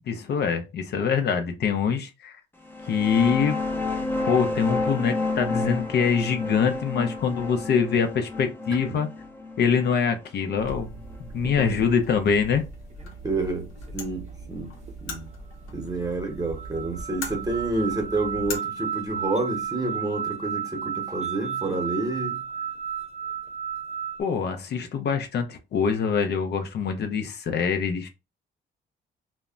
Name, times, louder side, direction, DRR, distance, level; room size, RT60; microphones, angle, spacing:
voice 1, 0.1-2.4 2.8-3.6 4.3-9.1 9.6-10.9 11.2-12.6 24.2-28.1, left 6 dB, 55° left, 0.5 m, -24 dB
sound 1, 2.6-12.0, left 3 dB, 10° left, 0.6 m, -31 dB
sound 2, 10.6-18.6, equal, 85° left, 0.8 m, -39 dB
voice 2, 11.4-11.8 13.2-13.7 13.9-14.7 15.0-15.3 15.7-22.4, right 2 dB, 20° right, 0.9 m, -29 dB
sound 3, 11.6-11.9 12.9-13.1 13.9-14.0 14.9-15.0 15.9-16.0 16.2-24.2, right 8 dB, 35° right, 0.5 m, -33 dB
2.1 x 2.0 x 3.6 m
cardioid pair, 90°, 20 cm